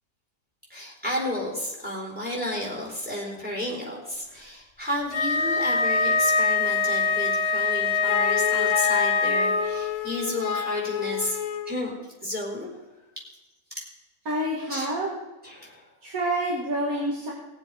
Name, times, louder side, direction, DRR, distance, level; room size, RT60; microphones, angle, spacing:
voice 1, 0.7-11.4 11.7-11.9 12.2-12.7 13.2-13.3 13.7-13.9 14.7-14.9 15.4-15.9, left 1 dB, 5° right, -3 dB, 4.0 m, -32 dB
Wind instrument woodwind instrument, 5.1-9.8, left 4 dB, 20° left, 1.2 m, -23 dB
Wind instrument woodwind instrument 2, 8.1-11.8, left 9 dB, 75° left, 1.2 m, -29 dB
voice 2, 14.3-15.2 16.0-17.3, right 1 dB, 85° right, -4 dB, 2.5 m, -27 dB
19.0 x 7.5 x 4.9 m, 1.1 s
omnidirectional pair, 1.5 m